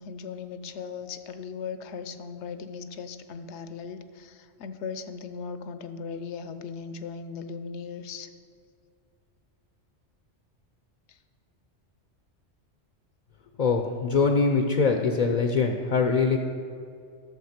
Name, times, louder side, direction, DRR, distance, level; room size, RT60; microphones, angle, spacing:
voice 1, 0.0-8.3 11.1-11.2, left 5 dB, 70° left, 10 dB, 1.0 m, -38 dB
voice 2, 13.6-16.4, left 4 dB, 45° left, 4 dB, 0.6 m, -23 dB
12.0 x 7.0 x 5.8 m, 2.4 s
omnidirectional pair, 1.2 m